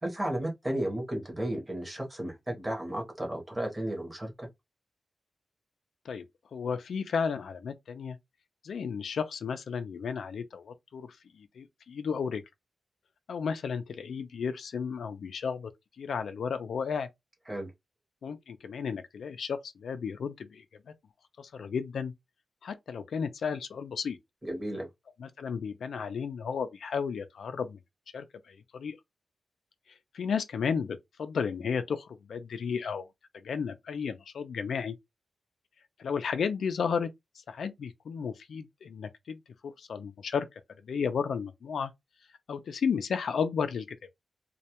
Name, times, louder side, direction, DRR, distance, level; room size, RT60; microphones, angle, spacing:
voice 1, 0.0-4.5 17.5-17.7 24.4-24.9, right 1 dB, 15° right, 0.8 m, -33 dB
voice 2, 6.5-8.2 8.6-12.4 13.3-15.7 16.0-17.1 18.2-20.6 21.4-22.1 22.6-24.2 25.2-27.8 28.1-29.0 30.1-33.1 33.3-35.0 36.0-37.1 37.5-41.9 42.5-43.9, left 6 dB, 85° left, 0.3 m, -33 dB
2.2 x 2.1 x 2.8 m
wide cardioid pair, 180°, 0 cm